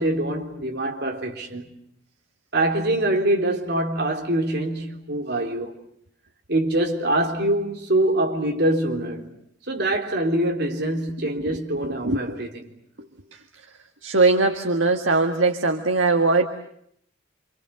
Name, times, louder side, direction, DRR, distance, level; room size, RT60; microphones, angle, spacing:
voice 1, 0.0-1.7 2.5-5.7 6.5-9.3 9.7-12.6, right 1 dB, 60° right, 3.7 m, -24 dB
voice 2, 11.8-12.4 14.0-16.5, right 3 dB, 80° right, 1.8 m, -21 dB
28.5 x 26.5 x 7.7 m
head